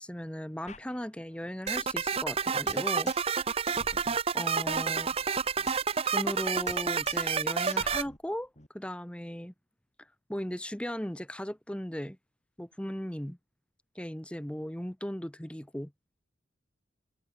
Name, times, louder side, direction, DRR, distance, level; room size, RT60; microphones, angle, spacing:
voice 1, 0.0-3.1 4.3-5.1 6.1-8.5 8.7-9.5 10.3-12.2 12.6-13.4 13.9-15.9, equal, 5° left, 1.0 m, -37 dB
sound 1, 0.7-1.9 2.2-2.3 2.7-3.4 3.7-5.9 6.2-6.4 6.7-7.4 7.7-8.7, left 3 dB, 35° left, 7.6 m, -49 dB
sound 2, 1.7-8.0, right 6 dB, 30° right, 0.6 m, -29 dB
head